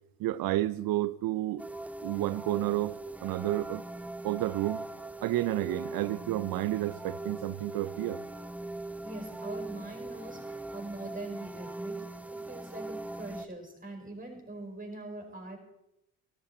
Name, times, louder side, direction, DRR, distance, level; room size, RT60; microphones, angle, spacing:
voice 1, 0.2-1.6 2.0-3.8 4.2-4.8 5.2-8.2, right 15 dB, 65° right, 0.6 m, -31 dB
sound 1, 1.6-13.5, right 2 dB, 5° right, 0.7 m, -41 dB
voice 2, 9.0-15.6, right 2 dB, 20° right, 4.8 m, -43 dB
14.5 x 13.0 x 4.3 m
hypercardioid pair, 55°, 38 cm